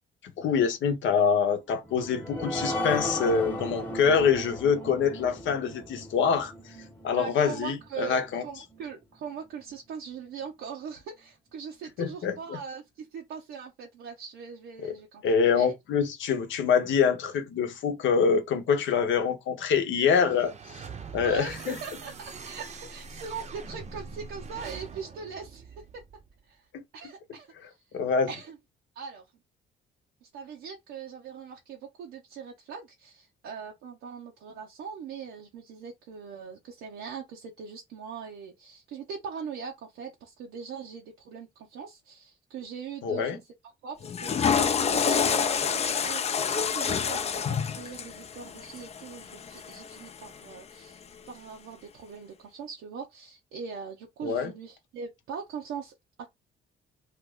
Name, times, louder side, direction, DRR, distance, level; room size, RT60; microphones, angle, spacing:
voice 1, 0.4-6.5 7.0-8.4 12.0-12.4 14.8-14.9 15.2-20.5 21.1-21.8 27.9-28.3 43.0-43.4 54.2-54.5, left 6 dB, 75° left, 0.8 m, -25 dB
sound 1, 1.8-8.8 9.3-9.4 9.7-9.8, left 1 dB, 10° left, 1.0 m, -36 dB
voice 2, 7.2-15.7 21.2-25.8 26.5-26.7 26.9-28.0 28.3-28.6 28.9-29.2 30.2-43.4 43.8-51.0 51.3-56.3, right 6 dB, 90° right, 0.7 m, -41 dB
sound 2, 20.1-26.4, right 5 dB, 35° right, 0.6 m, -43 dB
Water / Toilet flush, 44.0-50.3, left 7 dB, 30° left, 0.4 m, -28 dB
2.9 x 2.3 x 3.5 m
cardioid pair, 90°, 20 cm